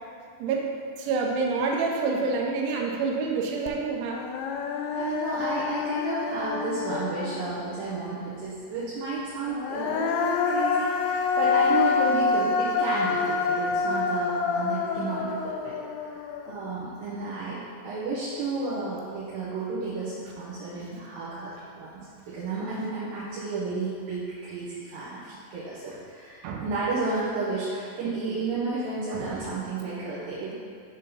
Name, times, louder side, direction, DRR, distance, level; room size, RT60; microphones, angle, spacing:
voice 1, 1.0-4.2 26.4-26.6 29.1-29.4, right 4 dB, 90° right, 0 dB, 3.2 m, -27 dB
Human voice, 3.7-3.8 4.1-7.8 9.4-16.7, left 5 dB, 85° left, 2.7 m, -27 dB
voice 2, 4.9-15.8 16.1-30.5, right 3 dB, 75° right, -10 dB, 2.2 m, -32 dB
7.1 x 3.6 x 5.4 m, 2.4 s
omnidirectional pair, 5.2 m